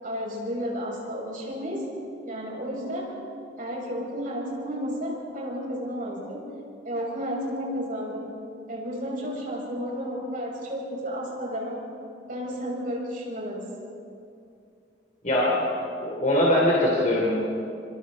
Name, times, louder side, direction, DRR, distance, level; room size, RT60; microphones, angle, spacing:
voice 1, 0.0-1.8 2.2-3.2 3.6-6.5 6.8-8.3 8.7-11.8 12.3-13.7, equal, 50° right, -3 dB, 7.0 m, -32 dB
voice 2, 15.2-15.6 16.0-17.3, left 1 dB, 45° left, -4 dB, 3.5 m, -21 dB
27.0 x 25.5 x 4.2 m, 2.5 s
head